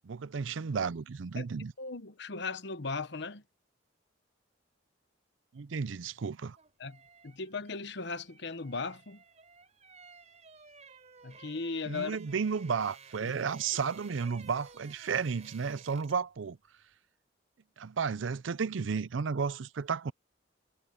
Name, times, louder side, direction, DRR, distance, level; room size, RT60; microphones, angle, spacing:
voice 1, 0.0-1.7 5.5-6.6 11.9-16.6 17.8-20.1, right 5 dB, 80° right, 0.5 m, -33 dB
voice 2, 1.8-3.4 6.8-9.2 11.2-12.2 13.2-13.3, left 4 dB, 65° left, 1.1 m, -37 dB
sound 1, 6.3-16.3 16.6-16.8, right 5 dB, 40° right, 4.2 m, -55 dB
head